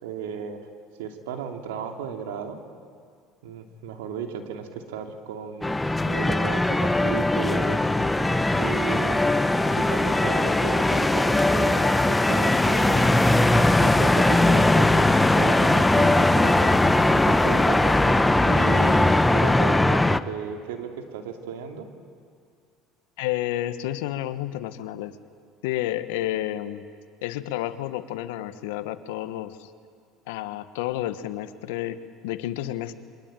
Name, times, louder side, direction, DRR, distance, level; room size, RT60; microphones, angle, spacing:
voice 1, 0.0-0.6 1.0-2.6 3.4-5.8 6.1-7.9 8.6-13.2 13.8-21.9, right 7 dB, 90° right, 4 dB, 2.7 m, -35 dB
sound 1, 5.6-20.2, left 2 dB, 10° left, 0.9 m, -20 dB
voice 2, 23.2-25.2 25.6-26.8 27.2-29.7 30.3-32.9, left 14 dB, 85° left, 12 dB, 1.3 m, -30 dB
27.0 x 24.0 x 9.1 m, 2.2 s
supercardioid pair, 95°, 0 cm